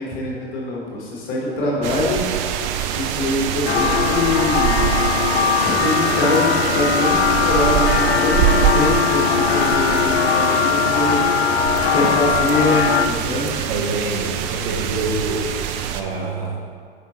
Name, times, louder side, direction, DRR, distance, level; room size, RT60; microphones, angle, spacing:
voice 1, 0.0-2.2 2.9-4.8 5.6-13.5, left 2 dB, 40° left, -3 dB, 1.5 m, -24 dB
sound 1, 1.8-16.0, right 10 dB, 25° right, 0.4 m, -24 dB
sound 2, 3.6-13.1, left 7 dB, 80° left, 0.5 m, -20 dB
voice 2, 13.6-15.6 15.9-16.6, right 3 dB, 55° right, -1 dB, 1.2 m, -26 dB
8.9 x 4.9 x 3.1 m, 2.1 s
figure-of-eight pair, 95°, 31 cm